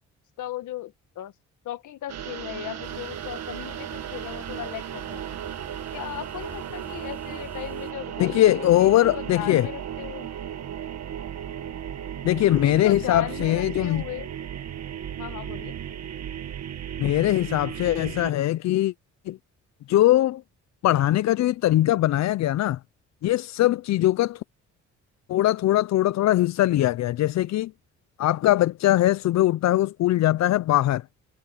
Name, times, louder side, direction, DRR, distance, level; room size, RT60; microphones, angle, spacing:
voice 1, 0.4-1.3 1.6-5.4 5.9-10.3 12.5-14.3 15.2-15.8, left 13 dB, 80° left, 1.8 m, -37 dB
sound 1, 2.1-18.3, right 9 dB, 60° right, 1.7 m, -35 dB
sound 2, 2.8-7.9, right 1 dB, 5° right, 3.9 m, -49 dB
voice 2, 8.2-9.7 12.2-14.0 17.0-18.9 19.3-19.4 19.9-20.4 20.8-22.8 23.2-24.4 25.3-27.7 28.2-31.0, left 14 dB, 65° left, 0.5 m, -21 dB
cardioid pair, 90°, 30 cm